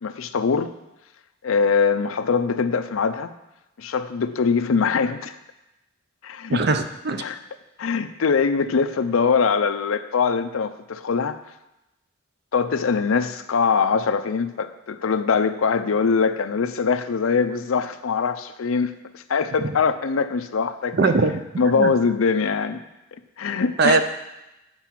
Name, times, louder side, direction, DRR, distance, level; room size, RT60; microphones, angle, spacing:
voice 1, 0.0-0.7 1.4-3.3 3.8-5.4 6.2-6.7 7.2-7.4 7.8-11.4 12.5-21.0 21.6-22.8 23.4-24.0, left 5 dB, 85° left, 11 dB, 0.5 m, -22 dB
voice 2, 6.5-7.2 20.9-21.9 23.8-24.0, right 3 dB, 50° right, 8 dB, 0.6 m, -21 dB
8.9 x 4.7 x 5.9 m, 0.95 s
head